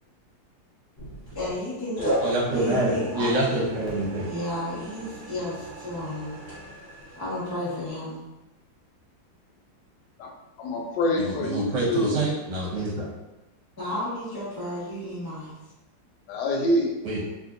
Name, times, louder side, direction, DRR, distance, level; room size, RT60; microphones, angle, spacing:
sound 1, 1.0-1.6 2.0-7.9, right 1 dB, 35° left, 1.4 m, -35 dB
voice 1, 1.3-2.0 2.5-3.4 4.2-6.4 7.1-8.2 13.8-15.5, left 1 dB, 15° left, -9 dB, 0.8 m, -32 dB
voice 2, 2.2-4.3 11.2-13.1 17.0-17.2, right 1 dB, 70° right, -6 dB, 1.6 m, -26 dB
voice 3, 10.6-12.2 16.3-17.0, left 1 dB, 75° left, 0 dB, 1.2 m, -26 dB
3.3 x 2.5 x 2.5 m, 1.0 s
omnidirectional pair, 2.0 m